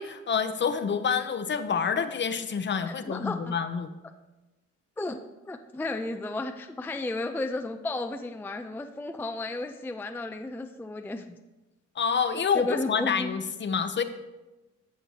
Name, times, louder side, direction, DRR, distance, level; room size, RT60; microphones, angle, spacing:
voice 1, 0.0-3.9 12.0-14.0, left 6 dB, 40° left, 10 dB, 0.7 m, -28 dB
voice 2, 2.9-3.5 5.0-5.2 5.5-11.4 12.5-13.3, left 2 dB, 5° left, 6 dB, 0.4 m, -33 dB
13.0 x 7.1 x 2.9 m, 1.1 s
cardioid pair, 90°, 30 cm